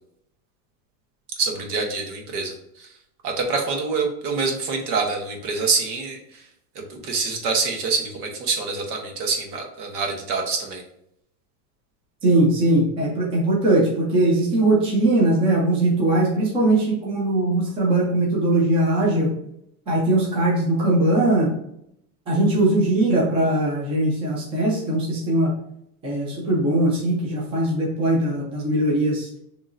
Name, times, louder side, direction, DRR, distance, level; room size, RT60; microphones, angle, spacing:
voice 1, 1.4-2.9 3.2-6.2 6.7-10.8, right 4 dB, 65° right, 2 dB, 1.3 m, -26 dB
voice 2, 12.2-19.3 19.9-21.5 22.3-25.5 26.0-29.3, right 1 dB, 10° right, -4 dB, 0.6 m, -20 dB
6.3 x 3.0 x 2.6 m, 0.76 s
supercardioid pair, 170°, 48 cm